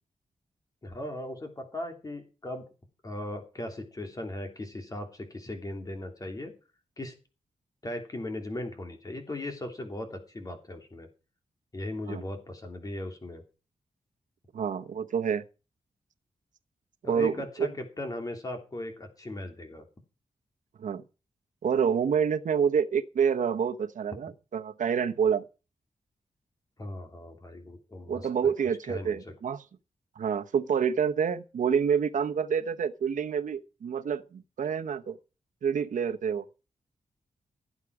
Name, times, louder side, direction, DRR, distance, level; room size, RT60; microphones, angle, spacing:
voice 1, 0.8-2.7 3.0-6.5 7.0-7.1 7.8-11.1 11.7-13.4 17.0-19.9 26.8-28.5 28.9-29.3, left 1 dB, 30° left, 3.1 m, -38 dB
voice 2, 14.5-15.4 17.0-17.7 20.8-21.0 21.6-25.4 28.1-29.6 30.2-35.2 35.6-36.4, right 7 dB, 90° right, 1.0 m, -28 dB
17.0 x 8.3 x 4.9 m
wide cardioid pair, 145°, 13 cm